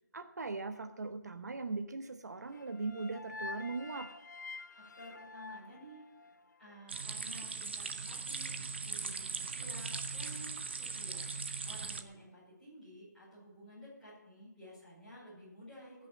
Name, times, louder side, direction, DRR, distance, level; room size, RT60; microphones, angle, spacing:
voice 1, 0.1-4.1, right 3 dB, 65° right, 8 dB, 1.0 m, -39 dB
sound 1, 2.5-6.7, left 3 dB, 75° left, 0.8 m, -47 dB
voice 2, 4.7-6.0 6.6-10.5 10.8-11.3 11.6-16.1, equal, ahead, -13 dB, 4.8 m, -53 dB
sound 2, 6.9-12.0, right 4 dB, 35° right, 0.7 m, -39 dB
15.5 x 6.4 x 7.5 m, 0.97 s
hypercardioid pair, 180°, 10 cm